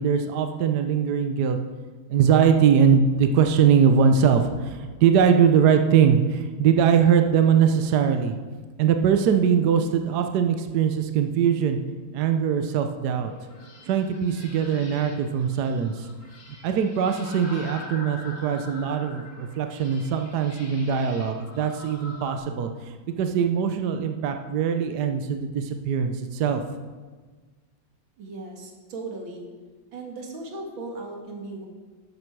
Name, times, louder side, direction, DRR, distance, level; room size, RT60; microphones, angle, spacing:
voice 1, 0.0-1.6 2.1-8.4 8.8-11.8 12.1-13.3 13.9-16.1 16.6-26.6, right 7 dB, 65° right, 6 dB, 1.2 m, -21 dB
sound 1, 13.2-22.4, left 2 dB, 40° left, 1.9 m, -44 dB
voice 2, 28.2-29.5 29.9-31.7, right 2 dB, 85° right, 1 dB, 2.6 m, -37 dB
12.5 x 10.5 x 4.7 m, 1.4 s
omnidirectional pair, 2.1 m